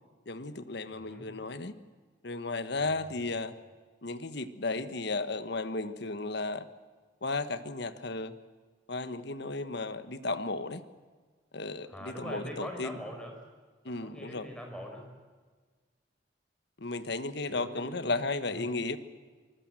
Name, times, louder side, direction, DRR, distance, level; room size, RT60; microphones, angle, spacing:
voice 1, 0.3-1.7 2.2-3.5 4.0-6.7 7.2-8.3 8.9-10.8 11.5-13.0 13.8-14.5 16.8-19.0, left 3 dB, 60° left, 12 dB, 1.4 m, -34 dB
voice 2, 0.9-1.3 2.8-3.3 11.8-13.4 13.9-15.1 17.5-18.2 18.4-18.7, equal, 5° left, 2 dB, 5.4 m, -43 dB
24.5 x 21.0 x 7.6 m, 1.4 s
head